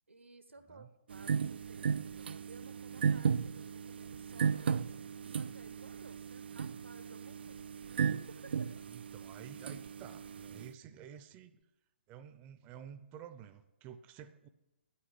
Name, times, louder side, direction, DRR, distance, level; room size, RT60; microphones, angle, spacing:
voice 1, 0.1-5.0 5.3-8.8, right 2 dB, 85° right, 10 dB, 1.5 m, -57 dB
sound 1, 1.1-10.7, right 6 dB, 55° right, 0.4 m, -36 dB
voice 2, 8.9-11.6 12.1-14.5, right 9 dB, 25° right, 11 dB, 0.7 m, -51 dB
10.0 x 8.6 x 10.0 m, 0.96 s
figure-of-eight pair, 125°, 6 cm